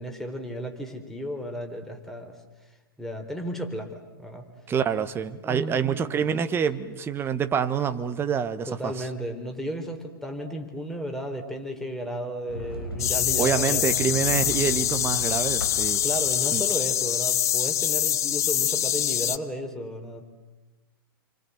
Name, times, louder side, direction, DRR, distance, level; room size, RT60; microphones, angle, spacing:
voice 1, 0.0-2.4 3.0-4.5 5.4-6.3 8.7-14.1 16.0-20.3, right 1 dB, 5° left, 3.8 m, -34 dB
voice 2, 4.7-8.9 13.4-16.0 16.5-16.6, right 7 dB, 20° right, 1.3 m, -26 dB
Sliding door, 12.5-17.3, left 1 dB, 90° left, 4.2 m, -36 dB
sound 1, 13.0-19.4, left 11 dB, 25° left, 0.9 m, -25 dB
29.5 x 25.0 x 7.8 m
hypercardioid pair, 110°, 12 cm